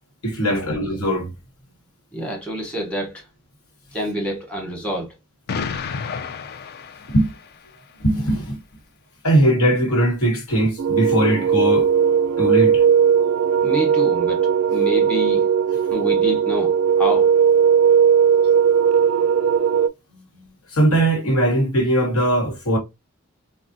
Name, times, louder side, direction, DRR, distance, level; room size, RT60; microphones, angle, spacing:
voice 1, 0.2-1.3 7.1-7.3 8.0-8.6 9.2-11.9 12.4-12.8 20.1-20.2 20.7-22.8, right 1 dB, 80° left, 1.2 m, -20 dB
voice 2, 2.1-3.3 3.9-5.1 13.6-15.4 15.9-17.3, equal, 5° left, 1.0 m, -27 dB
Explosion, 5.5-7.7, left 5 dB, 45° left, 0.4 m, -31 dB
sound 1, 10.8-19.9, right 7 dB, 70° right, 0.3 m, -17 dB
3.8 x 2.1 x 2.6 m
head